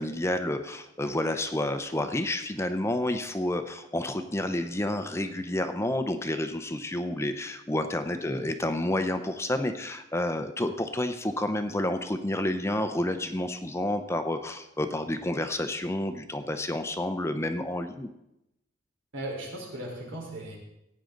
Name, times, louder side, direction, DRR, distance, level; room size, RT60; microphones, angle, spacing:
voice 1, 0.0-18.1, left 1 dB, 15° left, 8 dB, 0.6 m, -30 dB
voice 2, 19.1-20.6, right 1 dB, 85° right, -2 dB, 4.2 m, -37 dB
17.0 x 9.2 x 3.9 m, 0.88 s
head